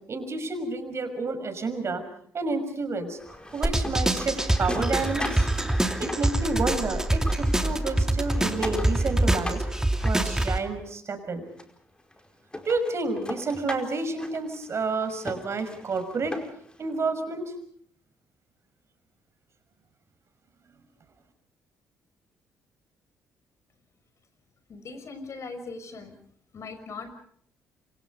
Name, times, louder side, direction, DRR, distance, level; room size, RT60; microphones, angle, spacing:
voice 1, 0.1-2.0 2.3-3.2 3.5-5.5 6.0-9.6 10.0-11.5 12.6-16.4 16.8-17.5, right 3 dB, 45° right, 8 dB, 5.8 m, -30 dB
sound 1, 3.2-6.9 7.2-10.9 11.6-11.7 12.1-12.2 12.5-16.8, left 1 dB, 15° left, 4.8 m, -39 dB
sound 2, 3.6-10.6, right 1 dB, 10° right, 2.9 m, -25 dB
voice 2, 24.7-26.1 26.5-27.1, left 4 dB, 50° left, 10 dB, 5.8 m, -39 dB
28.0 x 25.5 x 5.3 m, 0.63 s
hypercardioid pair, 55°, 6 cm